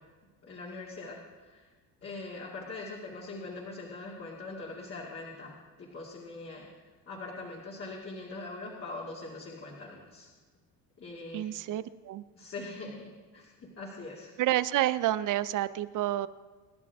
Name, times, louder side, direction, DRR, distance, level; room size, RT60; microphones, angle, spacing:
voice 1, 0.4-1.7 2.0-6.7 7.1-10.3 11.0-11.6 12.3-14.3, left 3 dB, 35° left, -4 dB, 2.5 m, -42 dB
voice 2, 11.3-12.2 14.4-16.3, right 14 dB, 55° right, 15 dB, 0.6 m, -29 dB
26.0 x 11.0 x 3.6 m, 1.4 s
cardioid pair, 125°, 39 cm